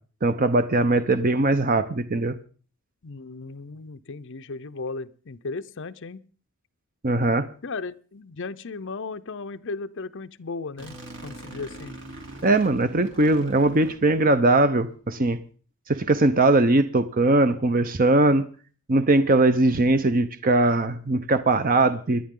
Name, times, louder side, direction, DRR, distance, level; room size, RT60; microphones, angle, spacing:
voice 1, 0.2-2.4 7.0-7.5 12.4-15.4 15.9-18.4 18.9-22.2, right 2 dB, 40° right, 10 dB, 0.7 m, -20 dB
voice 2, 3.0-6.2 7.6-11.0 11.2-12.0, left 3 dB, 55° left, 11 dB, 0.7 m, -35 dB
sound 1, 10.8-14.7, right 1 dB, 55° right, 3.2 m, -43 dB
27.0 x 10.5 x 3.8 m, 0.41 s
head